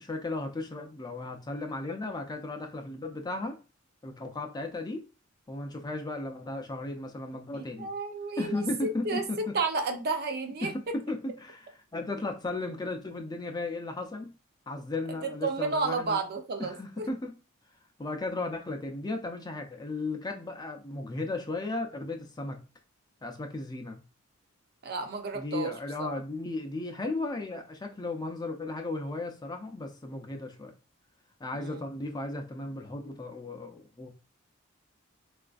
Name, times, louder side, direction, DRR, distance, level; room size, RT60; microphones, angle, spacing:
voice 1, 0.0-3.6 4.0-5.0 5.5-7.9 8.4-9.5 10.6-14.3 14.7-16.2 16.6-17.3 18.0-22.6 23.2-24.0 25.3-30.7 31.4-34.1, left 2 dB, 20° left, 0.4 m, -35 dB
voice 2, 7.5-10.9 15.2-17.1 24.8-25.7 26.0-26.2 31.5-31.9, right 3 dB, 45° right, 0.5 m, -32 dB
4.0 x 2.4 x 2.3 m
head